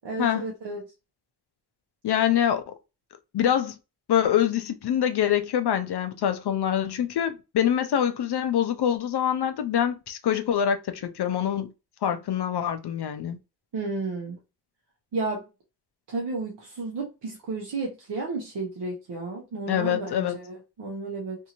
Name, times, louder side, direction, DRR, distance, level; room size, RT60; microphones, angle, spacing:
voice 1, 0.0-0.8 13.7-14.4 15.1-15.4 16.1-21.4, right 3 dB, 80° right, 0.8 m, -32 dB
voice 2, 2.0-2.7 3.3-3.8 4.1-11.7 12.0-13.4 19.7-20.4, left 9 dB, 70° left, 0.5 m, -25 dB
2.7 x 2.5 x 2.8 m
cardioid pair, 50°, 41 cm